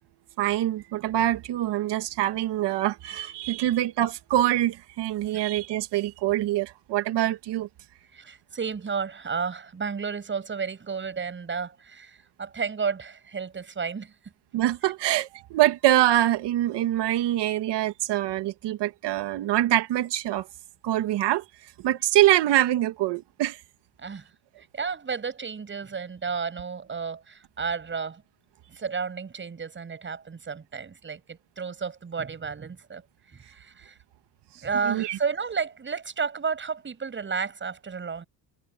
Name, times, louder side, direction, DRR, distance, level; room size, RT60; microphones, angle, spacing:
voice 1, 0.4-7.7 14.5-20.5 20.8-21.4 21.8-23.6 34.8-35.2, right 14 dB, 70° right, 2.1 m, -24 dB
voice 2, 8.1-14.3 24.0-24.3 24.6-28.2 28.7-33.0 33.3-34.0 34.6-38.2, right 5 dB, 25° right, 7.8 m, -32 dB
cardioid pair, 145°, 43 cm